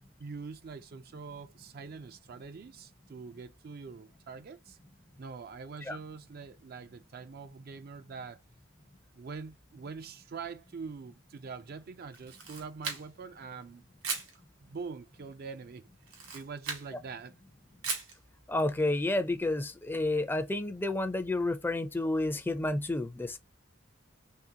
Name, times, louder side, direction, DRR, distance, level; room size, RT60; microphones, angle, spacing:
voice 1, 0.2-4.8 5.2-8.4 9.1-13.9 14.6-15.8 16.3-17.4, right 5 dB, 50° right, 0.4 m, -44 dB
Camera, 12.1-13.3 14.0-14.3 16.0-16.9 17.8-18.2, right 5 dB, 75° right, 1.7 m, -37 dB
voice 2, 18.5-23.4, left 2 dB, 10° left, 0.4 m, -30 dB
3.7 x 3.3 x 2.8 m
head